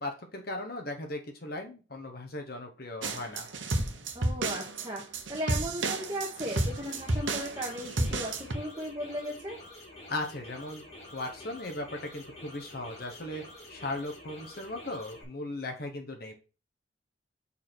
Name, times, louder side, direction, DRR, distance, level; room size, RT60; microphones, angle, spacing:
voice 1, 0.0-3.5 10.1-10.8 11.1-13.4 13.7-16.3, left 2 dB, 50° left, 3 dB, 1.1 m, -37 dB
sound 1, 3.0-8.5, right 2 dB, 75° right, 1.1 m, -32 dB
voice 2, 4.1-9.6, equal, 20° right, -3 dB, 1.3 m, -36 dB
sound 2, 6.4-15.2, left 1 dB, 35° left, 1.9 m, -49 dB
5.6 x 4.7 x 4.4 m, 0.33 s
head